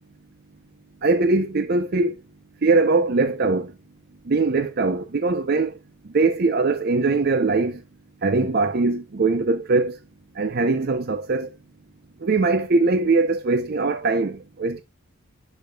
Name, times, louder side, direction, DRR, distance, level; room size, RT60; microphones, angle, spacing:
voice 1, 1.0-2.2 2.6-3.7 4.3-5.7 6.1-7.8 8.2-10.0 10.4-11.5 12.2-14.8, right 3 dB, 45° right, 0.5 m, -21 dB
10.5 x 5.1 x 2.2 m
head